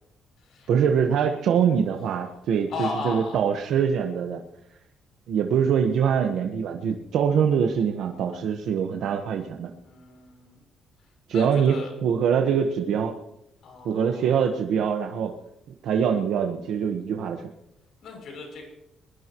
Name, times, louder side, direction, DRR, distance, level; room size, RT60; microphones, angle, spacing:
voice 1, 0.7-4.4 5.3-9.7 11.3-13.1 13.8-15.3 15.8-17.4, right 7 dB, 75° right, 3 dB, 1.3 m, -24 dB
voice 2, 2.7-3.4 9.8-10.6 11.3-11.9 13.6-14.4 18.0-18.6, left 3 dB, 60° left, 2 dB, 7.0 m, -36 dB
21.5 x 21.0 x 3.1 m, 0.85 s
cardioid pair, 155°, 0 cm